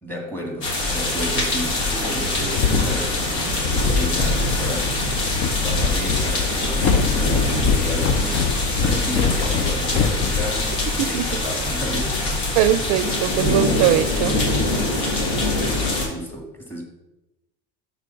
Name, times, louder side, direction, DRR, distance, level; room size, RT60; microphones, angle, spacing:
voice 1, 0.0-12.2 15.0-16.8, equal, 5° left, 0 dB, 2.0 m, -32 dB
sound 1, 0.6-16.1, left 2 dB, 85° left, 1.9 m, -23 dB
sound 2, 2.4-11.0, left 6 dB, 50° left, 0.7 m, -24 dB
voice 2, 12.6-14.4, right 12 dB, 55° right, 16 dB, 0.5 m, -21 dB
6.3 x 4.0 x 5.6 m, 0.97 s
supercardioid pair, 100°, 32 cm